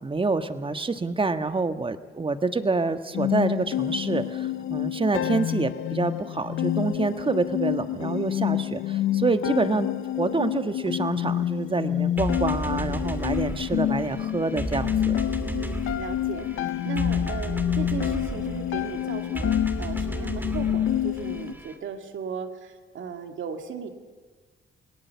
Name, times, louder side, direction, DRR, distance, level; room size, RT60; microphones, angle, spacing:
voice 1, 0.0-15.1, right 3 dB, 25° right, 9 dB, 1.4 m, -27 dB
sound 1, 3.1-21.5, left 12 dB, 80° left, 0.6 m, -28 dB
sound 2, 12.2-21.7, right 1 dB, 10° right, 2.9 m, -34 dB
voice 2, 15.4-23.9, right 6 dB, 75° right, 5 dB, 2.3 m, -36 dB
28.0 x 18.5 x 7.1 m, 1.4 s
cardioid pair, 75°, 20 cm